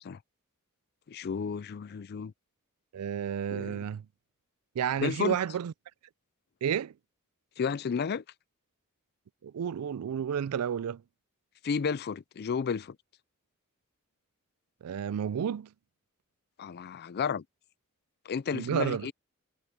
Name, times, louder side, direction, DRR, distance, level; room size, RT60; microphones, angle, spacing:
voice 1, 1.1-2.3 3.5-3.8 5.0-5.4 7.6-8.2 11.6-13.0 16.6-17.4 18.3-19.1, left 6 dB, 45° left, 0.4 m, -32 dB
voice 2, 2.9-4.1 4.8-5.7 6.6-6.9 9.4-11.0 14.8-15.7 18.5-19.1, right 8 dB, 80° right, 0.4 m, -31 dB
head